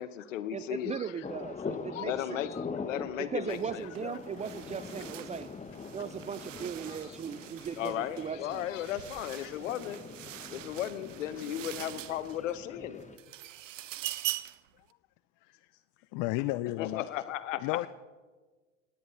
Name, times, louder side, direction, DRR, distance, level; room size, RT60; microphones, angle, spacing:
voice 1, 0.0-1.1 1.9-4.2 6.9-7.1 7.8-10.0 10.5-13.0 16.8-17.9, left 11 dB, 80° left, 14 dB, 1.0 m, -36 dB
voice 2, 0.5-2.4 3.2-5.5 5.9-8.7, right 7 dB, 20° right, 15 dB, 0.3 m, -38 dB
sound 1, 1.2-13.2, left 5 dB, 20° left, 1.2 m, -43 dB
sound 2, 3.5-3.7 4.0-12.6 13.0-14.7, right 14 dB, 90° right, 0.6 m, -43 dB
voice 3, 15.4-15.8 16.1-17.1 17.6-17.9, left 18 dB, 55° left, 16 dB, 0.6 m, -34 dB
18.0 x 10.5 x 5.5 m, 1.3 s
hypercardioid pair, 80°, 37 cm